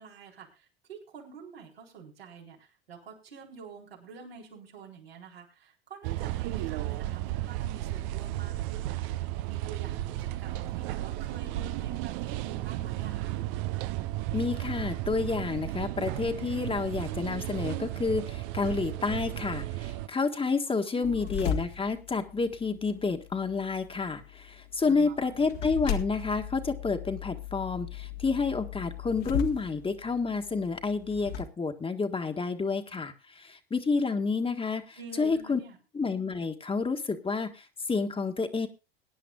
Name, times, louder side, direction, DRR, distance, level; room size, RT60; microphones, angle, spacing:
voice 1, 0.0-13.4 20.9-21.3 24.8-25.3 35.0-35.8, right 5 dB, 85° right, -2 dB, 4.2 m, -48 dB
sound 1, 6.0-20.1, right 16 dB, 60° right, 0.7 m, -34 dB
voice 2, 14.3-35.6 35.9-38.7, left 4 dB, 20° left, 6 dB, 1.6 m, -30 dB
sound 2, 21.0-31.4, left 7 dB, 65° left, 1.9 m, -38 dB
22.5 x 10.0 x 2.4 m, 0.27 s
hypercardioid pair, 80°, 29 cm